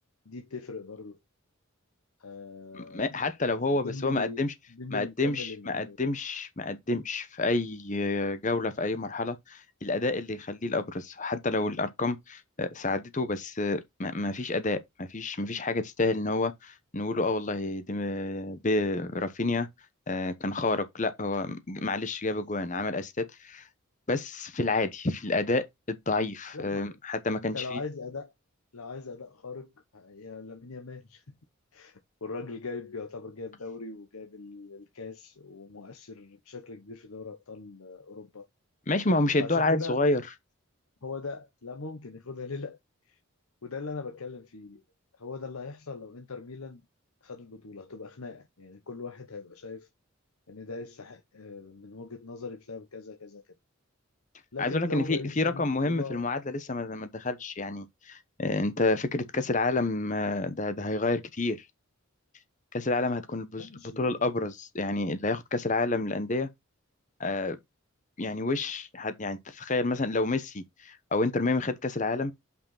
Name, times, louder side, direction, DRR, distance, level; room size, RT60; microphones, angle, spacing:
voice 1, 0.2-1.2 2.2-3.2 3.6-4.4 4.7-6.0 26.5-27.0 27.5-28.3 28.7-31.2 31.7-38.4 39.4-40.0 41.0-42.8 43.1-43.2 43.6-44.8 45.2-46.8 47.2-49.9 50.5-53.4 54.5-56.3 63.6-64.2, left 3 dB, 85° left, 1.0 m, -40 dB
voice 2, 2.7-4.5 4.9-19.7 20.1-23.6 24.1-27.8 38.9-40.2 54.6-61.6 62.7-63.7 64.0-66.5 67.2-67.6 68.2-72.3, left 2 dB, 35° left, 0.9 m, -29 dB
5.6 x 4.8 x 5.6 m
head